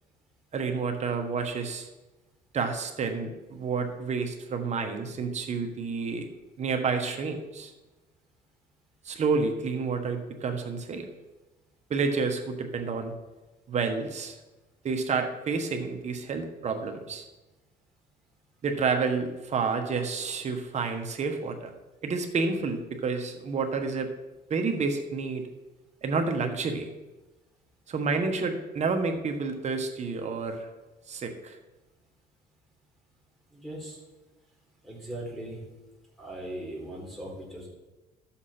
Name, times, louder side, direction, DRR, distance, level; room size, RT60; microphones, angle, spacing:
voice 1, 0.5-1.9 2.5-6.3 6.6-7.7 9.0-11.1 11.9-13.1 13.7-14.4 14.8-17.2 18.6-21.7 22.0-24.1 24.5-25.5 26.0-26.9 27.9-30.7 31.1-31.6, right 4 dB, 40° right, 5 dB, 1.3 m, -29 dB
voice 2, 33.5-34.0 34.8-35.6 36.2-37.7, right 1 dB, ahead, -3 dB, 3.7 m, -39 dB
12.5 x 7.3 x 4.4 m, 1.1 s
cardioid pair, 110°, 17 cm